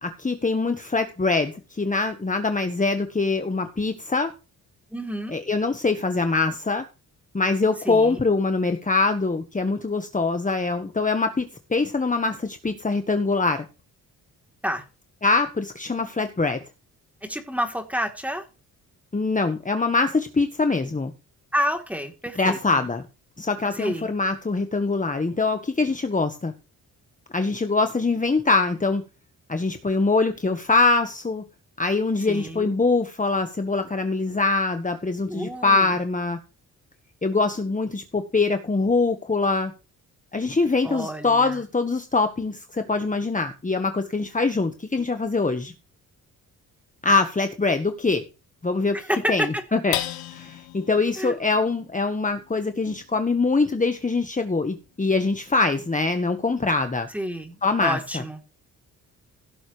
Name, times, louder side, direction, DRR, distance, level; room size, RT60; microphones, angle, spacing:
voice 1, 0.0-4.3 5.3-6.8 7.3-13.6 15.2-16.6 19.1-21.1 22.3-23.0 23.4-26.5 27.3-29.0 29.5-31.4 31.8-36.4 37.2-39.7 40.3-45.7 47.0-48.2 48.6-49.0 49.3-49.4 49.7-50.0 50.3-57.1 57.6-58.2, left 3 dB, 20° left, 7 dB, 1.5 m, -23 dB
voice 2, 4.9-5.4 7.9-8.2 14.6-14.8 17.2-18.4 21.5-22.8 23.7-24.1 32.3-32.7 35.3-35.9 40.8-41.6 48.9-49.5 51.2-51.4 57.1-58.4, equal, 5° right, 4 dB, 3.6 m, -29 dB
sound 1, 49.9-56.6 57.1-57.2 57.6-58.1, left 13 dB, 85° left, 1.3 m, -38 dB
17.0 x 7.0 x 3.4 m, 0.32 s
supercardioid pair, 55°, 36 cm